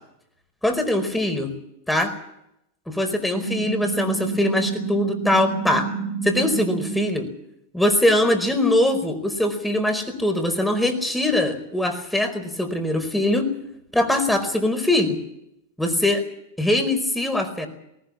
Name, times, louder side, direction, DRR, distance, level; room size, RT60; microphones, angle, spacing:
voice 1, 0.6-1.5 1.9-2.1 2.9-5.9 6.2-7.2 7.7-13.5 13.9-15.2 15.8-16.2 16.6-17.7, left 1 dB, 5° left, 7 dB, 4.7 m, -22 dB
sound 1, 3.3-7.2, right 5 dB, 90° left, 5.5 m, -29 dB
19.5 x 19.0 x 8.7 m, 0.80 s
hypercardioid pair, 100°, 0 cm